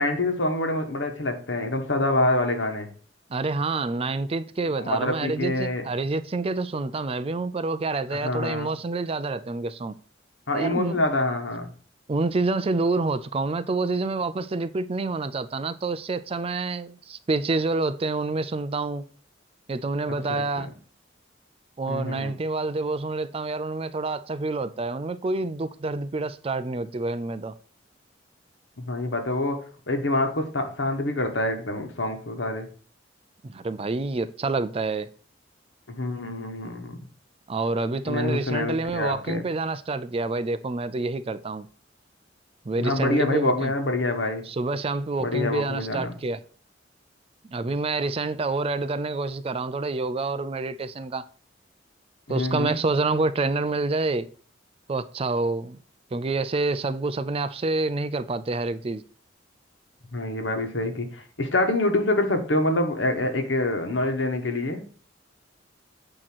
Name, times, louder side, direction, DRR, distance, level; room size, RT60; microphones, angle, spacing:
voice 1, 0.0-2.9 4.8-5.8 8.1-8.7 10.5-11.7 20.3-20.7 21.9-22.3 28.8-32.7 35.9-37.0 38.0-39.4 42.8-44.5 45.2-46.1 52.3-52.8 60.1-64.8, left 2 dB, 70° left, 1.3 m, -26 dB
voice 2, 3.3-10.0 10.5-11.0 12.1-19.0 19.7-20.7 21.8-27.5 33.4-35.1 37.5-41.7 42.6-43.7 44.5-46.4 47.5-51.3 52.3-54.3 54.9-55.8 56.1-59.0, right 3 dB, 30° right, 0.4 m, -27 dB
8.7 x 3.0 x 6.0 m
head